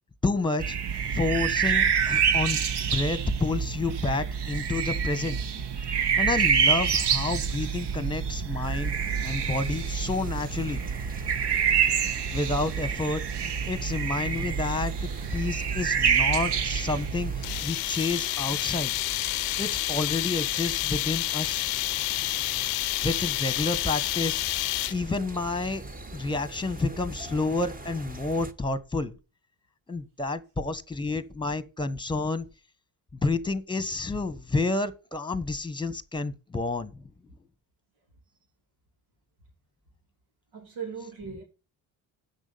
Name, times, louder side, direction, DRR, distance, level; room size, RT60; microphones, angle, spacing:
voice 1, 0.2-0.8 1.1-2.6 2.9-5.4 5.9-9.0 9.2-10.8 12.0-14.9 15.3-18.9 19.6-21.7 23.0-24.4 24.9-25.8 26.1-29.1 29.9-32.5 33.1-37.0, left 3 dB, 10° left, 1.2 m, -29 dB
sound 1, 0.6-17.6, right 7 dB, 55° right, 1.1 m, -27 dB
sound 2, 8.6-28.5, right 2 dB, 15° right, 1.1 m, -43 dB
sound 3, 17.4-25.2, left 18 dB, 85° left, 0.7 m, -29 dB
voice 2, 40.5-41.4, right 6 dB, 85° right, 2.9 m, -38 dB
8.3 x 6.3 x 6.8 m
supercardioid pair, 55°, 49 cm